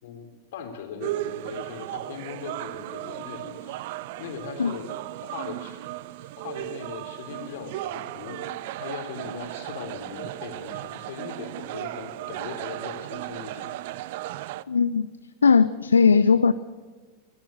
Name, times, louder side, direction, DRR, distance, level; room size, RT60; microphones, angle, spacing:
voice 1, 0.0-3.8 4.2-4.9 5.2-5.8 6.4-8.5 8.8-13.8, left 6 dB, 55° left, 5 dB, 3.8 m, -39 dB
sound 1, 1.0-14.6, right 15 dB, 50° right, 0.6 m, -36 dB
voice 2, 14.7-15.1 15.4-16.5, left 5 dB, 75° left, 14 dB, 0.6 m, -18 dB
24.5 x 19.0 x 6.6 m, 1.4 s
figure-of-eight pair, 90°, 0 cm